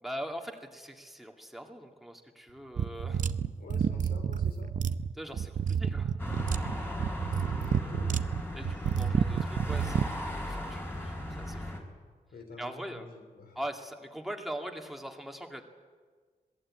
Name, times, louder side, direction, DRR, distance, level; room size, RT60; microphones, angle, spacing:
voice 1, 0.0-3.3 5.2-6.2 8.5-11.7 12.6-13.0 13.5-15.6, equal, ahead, 2 dB, 2.4 m, -41 dB
sound 1, 2.8-10.1, right 7 dB, 60° right, 0.7 m, -30 dB
voice 2, 3.6-4.7 7.5-8.1 12.3-13.6, left 3 dB, 85° left, 4 dB, 3.9 m, -48 dB
sound 2, 6.2-11.8, left 1 dB, 15° left, 3.9 m, -37 dB
26.5 x 19.0 x 8.9 m, 1.5 s
wide cardioid pair, 170°, 15 cm